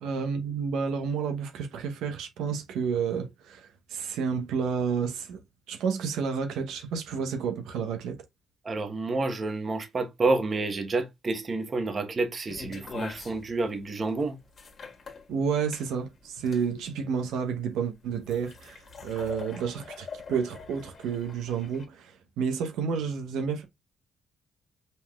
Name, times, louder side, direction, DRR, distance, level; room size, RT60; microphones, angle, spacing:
voice 1, 0.0-5.4 5.7-8.2 15.3-23.6, right 6 dB, 85° right, 0.9 m, -30 dB
voice 2, 8.6-14.4, right 3 dB, 35° right, 1.1 m, -29 dB
sound 1, 12.5-21.8, left 5 dB, 50° left, 1.6 m, -44 dB
5.4 x 3.6 x 2.3 m
cardioid pair, 90°, 0 cm